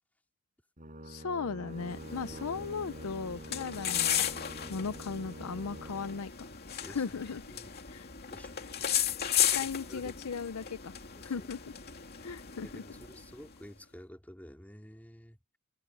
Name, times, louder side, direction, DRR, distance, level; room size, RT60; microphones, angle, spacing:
Brass instrument, 0.8-6.3, right 1 dB, 35° right, 6.9 m, -46 dB
voice 1, 1.1-4.3 4.7-6.3 6.9-7.4 7.9-8.1 9.5-10.9 11.2-11.6 12.2-12.8, left 5 dB, 80° left, 0.6 m, -37 dB
sound 1, 1.8-13.6, left 10 dB, 45° left, 2.5 m, -35 dB
voice 2, 6.8-7.2 7.5-7.8 8.3-8.6 9.5-10.2 11.2-11.5 12.6-15.6, equal, 5° left, 4.3 m, -51 dB
head